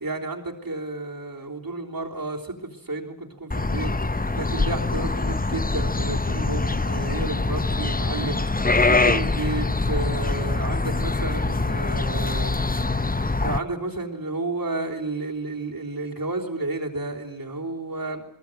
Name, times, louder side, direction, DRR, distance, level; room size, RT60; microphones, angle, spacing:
voice 1, 0.0-18.3, right 2 dB, 55° right, -2 dB, 3.6 m, -32 dB
sound 1, 3.5-13.6, left 3 dB, 20° left, 0.9 m, -24 dB
21.5 x 21.0 x 9.1 m, 0.80 s
wide cardioid pair, 40°, 42 cm